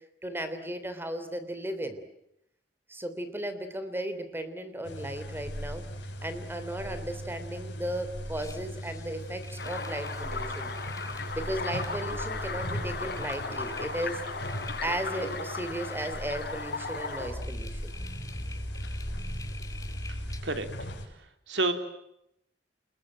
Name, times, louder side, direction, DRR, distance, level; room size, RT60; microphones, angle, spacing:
voice 1, 0.2-2.0 2.9-5.8 6.2-10.7 11.3-14.2 14.8-17.9, right 1 dB, 15° right, 10 dB, 3.4 m, -35 dB
sound 1, 4.8-21.1, equal, 85° left, 6.7 m, -39 dB
sound 2, 8.4-9.0 9.4-11.3 11.6-12.0 12.4-12.6 12.9-14.0 14.4-15.4 15.7-16.1 17.2-20.4, left 1 dB, 20° left, 1.9 m, -41 dB
sound 3, 9.6-17.3, left 3 dB, 65° left, 6.7 m, -36 dB
voice 2, 20.1-20.7 21.5-21.7, right 2 dB, 85° right, 8 dB, 3.5 m, -29 dB
29.5 x 22.0 x 9.0 m, 0.80 s
head